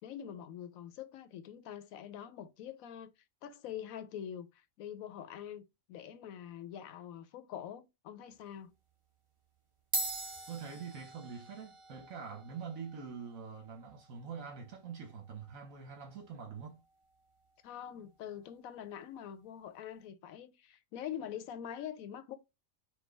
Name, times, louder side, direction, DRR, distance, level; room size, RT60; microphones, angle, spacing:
voice 1, 0.0-3.1 3.4-8.7 17.6-22.4, left 9 dB, 80° left, 1.1 m, -45 dB
sound 1, 8.3-8.6 9.4-9.5 9.8-18.5, right 2 dB, 30° right, 0.6 m, -45 dB
voice 2, 10.5-16.8, right 6 dB, 75° right, 1.3 m, -45 dB
4.6 x 2.3 x 4.4 m
omnidirectional pair, 1.4 m